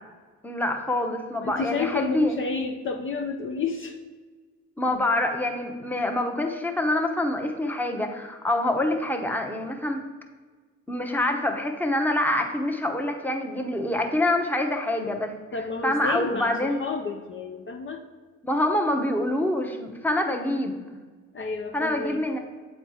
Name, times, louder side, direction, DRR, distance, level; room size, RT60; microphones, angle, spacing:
voice 1, 0.4-2.4 4.8-10.0 10.9-15.3 15.8-16.8 18.4-20.8 21.7-22.4, left 1 dB, 5° left, 4 dB, 0.9 m, -26 dB
voice 2, 1.4-4.0 15.5-18.0 21.3-22.3, left 4 dB, 40° left, 4 dB, 0.6 m, -31 dB
7.9 x 4.2 x 4.8 m, 1.4 s
cardioid pair, 90°, 30 cm